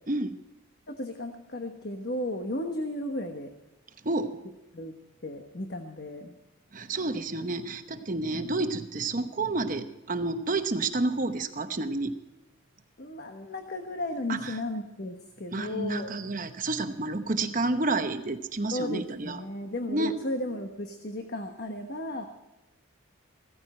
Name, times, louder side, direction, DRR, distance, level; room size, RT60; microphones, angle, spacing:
voice 1, 0.1-0.4 4.0-4.4 6.7-12.1 14.3-14.5 15.5-19.4 19.9-20.2, right 2 dB, 40° right, 8 dB, 0.9 m, -30 dB
voice 2, 0.9-3.5 4.7-5.0 5.2-6.3 8.3-8.4 13.0-16.1 17.5-17.6 18.7-22.3, left 1 dB, 50° left, 4 dB, 1.2 m, -35 dB
16.5 x 14.0 x 4.4 m, 1.0 s
head